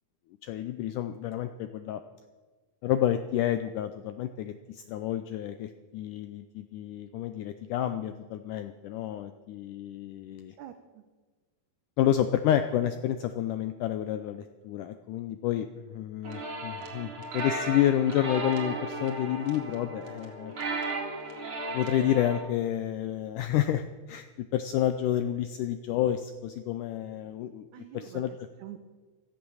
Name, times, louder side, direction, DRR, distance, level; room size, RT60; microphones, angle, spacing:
voice 1, 0.4-2.0 2.8-10.5 12.0-20.5 21.7-24.3 24.5-27.7 27.9-28.3, left 11 dB, 80° left, 9 dB, 1.9 m, -29 dB
voice 2, 10.6-11.0 27.7-28.8, right 11 dB, 75° right, 7 dB, 1.9 m, -46 dB
sound 1, 16.2-22.4, right 2 dB, 45° right, 2.8 m, -35 dB
16.0 x 13.5 x 6.3 m, 1.3 s
omnidirectional pair, 4.2 m